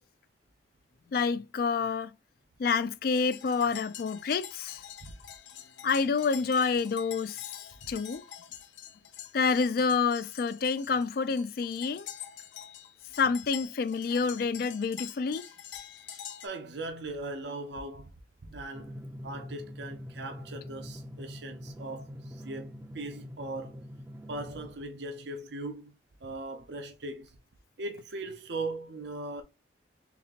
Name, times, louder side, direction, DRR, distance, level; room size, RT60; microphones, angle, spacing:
voice 1, 1.1-2.1 2.6-4.8 5.8-7.4 7.9-8.2 9.3-12.1 13.2-15.4, left 5 dB, 50° left, 0.3 m, -28 dB
sound 1, 3.1-16.5, left 10 dB, 80° left, 0.7 m, -46 dB
voice 2, 16.4-18.1 18.5-23.8 24.3-25.9 26.2-27.4 27.8-29.4, right 2 dB, 70° right, 0.6 m, -39 dB
Drum, 18.7-24.7, left 1 dB, 10° right, 0.5 m, -44 dB
4.1 x 3.3 x 2.8 m
head